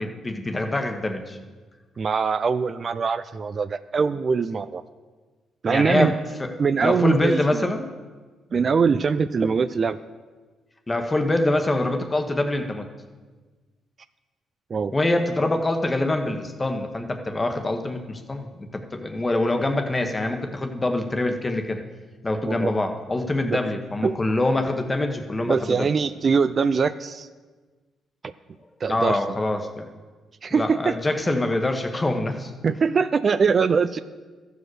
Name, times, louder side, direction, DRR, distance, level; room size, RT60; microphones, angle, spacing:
voice 1, 0.0-1.4 5.7-6.5 6.8-7.9 10.9-12.9 14.9-21.8 22.2-25.9 28.9-29.9 30.5-32.5, left 2 dB, 20° left, 5 dB, 1.1 m, -25 dB
voice 2, 2.0-4.8 5.6-6.1 6.6-7.7 8.5-10.0 14.7-14.9 22.4-22.7 23.4-23.6 24.0-24.2 25.5-27.3 28.2-28.3 28.8-29.4 30.4-31.0 32.6-34.0, right 5 dB, 40° right, 12 dB, 0.3 m, -22 dB
13.5 x 5.0 x 6.3 m, 1.3 s
cardioid pair, 90°, 0 cm